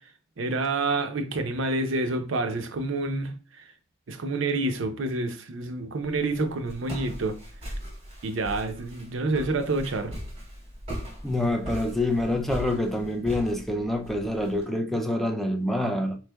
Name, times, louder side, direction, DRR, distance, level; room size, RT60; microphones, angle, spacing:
voice 1, 0.4-3.3 4.1-7.4 8.2-10.2, right 2 dB, 70° right, 0.6 m, -28 dB
Walk footsteps, 6.0-14.6, equal, 30° right, 1.8 m, -39 dB
voice 2, 11.2-16.2, left 1 dB, ahead, 0.3 m, -26 dB
4.2 x 3.2 x 2.2 m
head